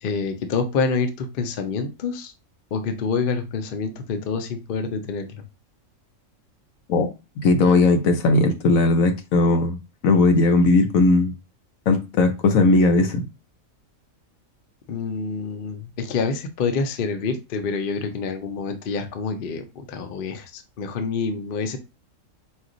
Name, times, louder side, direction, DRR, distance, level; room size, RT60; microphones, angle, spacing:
voice 1, 0.0-2.3 2.7-5.4 14.9-21.8, left 5 dB, 55° left, 7 dB, 0.7 m, -27 dB
voice 2, 7.4-9.8 10.0-11.3 11.9-13.2, left 3 dB, 80° left, 7 dB, 1.2 m, -18 dB
4.4 x 2.4 x 3.8 m, 0.27 s
omnidirectional pair, 1.4 m